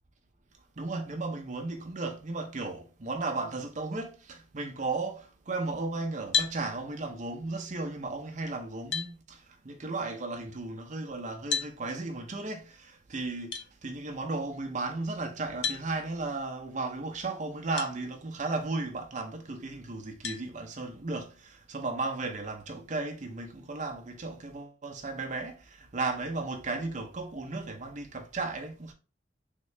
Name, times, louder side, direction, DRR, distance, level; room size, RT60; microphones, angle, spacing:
voice 1, 0.8-28.9, right 3 dB, 40° right, 0.6 m, -35 dB
sound 1, 6.3-6.6 8.3-8.4 8.9-9.1 11.5-11.7 13.5-13.7 15.6-15.8 17.8-17.9 18.6-18.7 20.2-20.4, left 6 dB, 65° left, 0.6 m, -30 dB
3.6 x 2.7 x 3.2 m
head